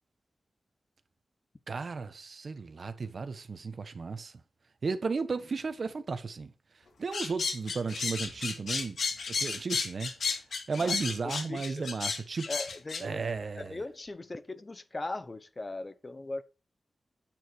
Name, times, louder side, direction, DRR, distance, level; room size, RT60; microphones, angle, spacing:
voice 1, 1.7-4.3 4.8-6.5 7.0-9.0 9.3-10.4 10.7-12.5 13.0-13.8, right 4 dB, 60° right, 1.3 m, -34 dB
sound 1, 7.1-13.0, left 4 dB, 85° left, 2.2 m, -33 dB
voice 2, 12.5-13.2 13.6-16.4, left 2 dB, 30° left, 1.0 m, -39 dB
9.1 x 7.8 x 4.7 m
wide cardioid pair, 100°, 0 cm